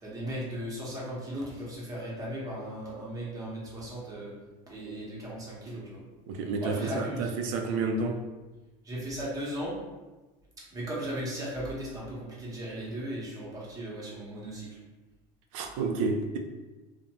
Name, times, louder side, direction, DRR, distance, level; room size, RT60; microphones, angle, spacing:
voice 1, 0.0-4.3 4.7-6.0 6.6-7.3 8.8-9.7 10.7-14.8, equal, 20° right, 0.8 m, -37 dB
voice 2, 6.3-8.2 15.5-16.4, right 3 dB, 90° right, 0.4 m, -30 dB
2.5 x 2.1 x 2.9 m
cardioid pair, 140°, 17 cm